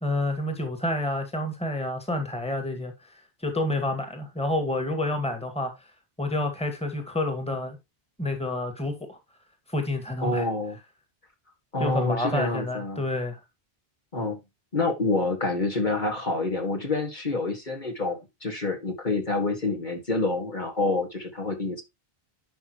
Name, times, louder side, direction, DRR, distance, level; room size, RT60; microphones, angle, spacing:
voice 1, 0.0-5.7 6.2-7.8 8.2-9.2 9.7-10.5 11.8-13.4, left 2 dB, 5° left, 1.9 m, -29 dB
voice 2, 10.2-10.8 11.7-13.0 14.1-14.4 14.7-21.8, left 2 dB, 50° left, 2.2 m, -27 dB
11.0 x 5.9 x 3.1 m
omnidirectional pair, 1.0 m